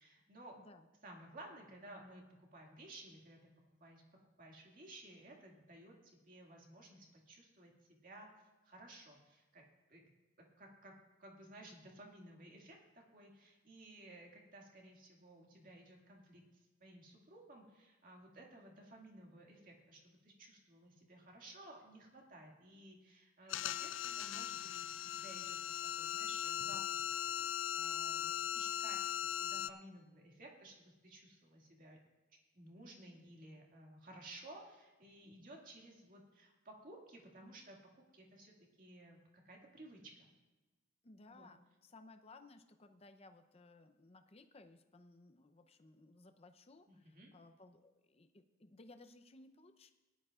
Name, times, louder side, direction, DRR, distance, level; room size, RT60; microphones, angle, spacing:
voice 1, 0.0-0.6 1.0-2.2 2.5-4.0 4.4-8.3 8.6-9.6 9.9-10.1 10.6-32.0 32.5-37.8 38.1-40.3 41.3-41.5 46.9-47.3, right 1 dB, 40° right, 0 dB, 2.1 m, -56 dB
voice 2, 0.6-0.9 41.0-49.9, left 2 dB, 30° left, 8 dB, 0.7 m, -60 dB
sound 1, 23.5-29.7, left 11 dB, 65° left, 0.4 m, -39 dB
19.0 x 11.5 x 2.5 m, 1.1 s
head